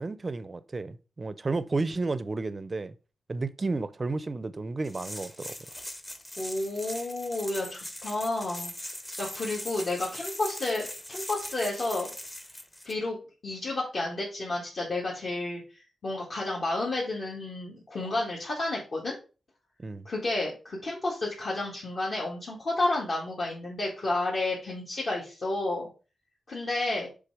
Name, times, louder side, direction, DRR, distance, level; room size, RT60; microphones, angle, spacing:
voice 1, 0.0-2.9 3.3-5.5 19.8-20.1, right 3 dB, 30° right, 0.5 m, -32 dB
sound 1, 4.8-12.9, left 1 dB, 15° left, 0.8 m, -40 dB
voice 2, 6.4-8.7 9.2-12.1 12.8-13.2 13.4-15.6 16.0-19.2 20.1-25.9 26.5-27.1, left 2 dB, 50° left, 2.0 m, -31 dB
6.8 x 3.8 x 4.8 m
wide cardioid pair, 130°, 0 cm